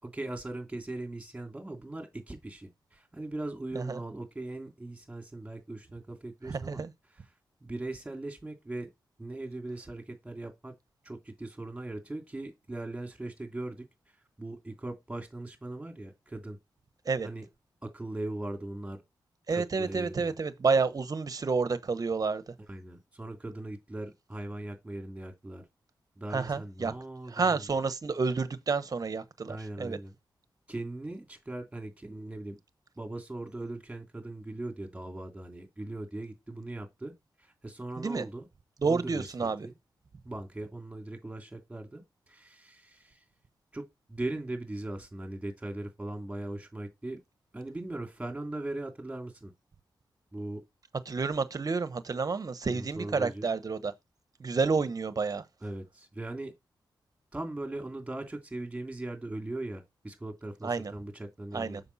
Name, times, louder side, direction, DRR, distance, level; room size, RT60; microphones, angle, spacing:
voice 1, 0.0-6.8 7.6-8.9 9.2-10.7 11.0-13.8 14.4-16.6 17.2-17.5 17.8-19.0 19.5-20.4 22.7-25.6 26.2-27.6 29.5-30.1 30.7-32.6 33.0-37.1 37.4-38.5 38.9-39.7 40.2-43.2 43.7-43.8 44.1-47.2 47.5-49.5 50.3-50.6 52.7-53.5 55.6-56.5 57.3-61.8, right 2 dB, 15° right, 2.8 m, -39 dB
voice 2, 6.5-6.9 17.0-17.3 19.5-22.5 26.3-26.9 27.3-30.0 38.0-38.2 38.8-39.7 51.1-53.9 54.4-55.4 60.6-60.9 61.5-61.8, right 4 dB, 50° right, 1.1 m, -30 dB
7.0 x 5.4 x 4.1 m
cardioid pair, 65°, 8 cm